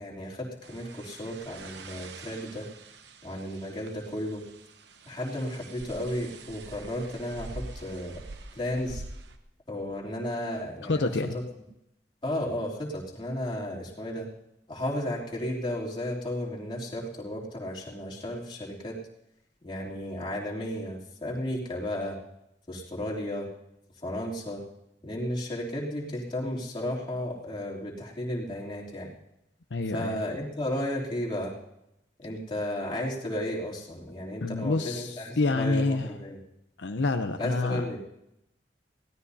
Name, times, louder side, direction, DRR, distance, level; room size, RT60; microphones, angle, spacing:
voice 1, 0.0-2.7 3.2-4.4 5.1-8.2 8.5-9.0 9.7-11.1 12.2-14.3 14.7-19.0 19.6-22.2 22.7-23.5 24.0-24.6 25.0-29.1 29.9-31.5 32.2-36.4 37.4-38.0, left 1 dB, 30° left, -4 dB, 3.0 m, -33 dB
sound 1, 0.6-9.4, right 3 dB, 70° right, 1.0 m, -45 dB
voice 2, 10.8-11.4 29.7-30.2 34.4-36.1 36.8-37.9, left 3 dB, 85° left, 6 dB, 0.7 m, -28 dB
22.5 x 16.5 x 2.8 m, 0.85 s
head